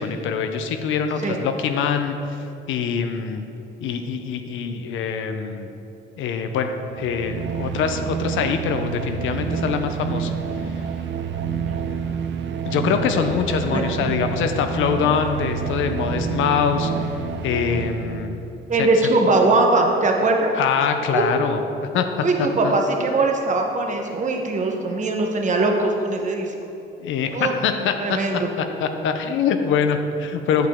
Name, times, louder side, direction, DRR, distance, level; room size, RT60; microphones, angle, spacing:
voice 1, 0.0-2.2 2.7-3.4 3.8-5.7 6.2-10.3 12.6-17.1 17.4-18.3 18.8-19.1 20.5-21.6 21.9-22.1 22.4-22.8 27.0-27.9 28.6-30.7, left 6 dB, 80° left, 7 dB, 0.6 m, -24 dB
sound 1, 6.8-18.5, right 7 dB, 70° right, 0.5 m, -28 dB
voice 2, 13.7-14.1 18.7-20.5 21.1-21.2 22.2-26.5 27.3-27.5 28.0-28.5, right 2 dB, 40° right, 2 dB, 1.0 m, -21 dB
8.0 x 6.7 x 3.6 m, 2.8 s
cardioid pair, 90°, 20 cm